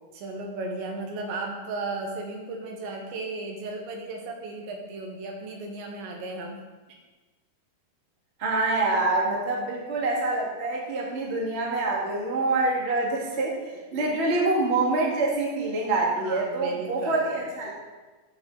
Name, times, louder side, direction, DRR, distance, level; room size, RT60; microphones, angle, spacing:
voice 1, 0.1-6.6 16.2-17.5, right 3 dB, 85° right, 1 dB, 3.9 m, -35 dB
voice 2, 8.4-17.7, right 2 dB, 30° right, -2 dB, 1.1 m, -26 dB
13.5 x 9.3 x 4.1 m, 1.3 s
omnidirectional pair, 5.0 m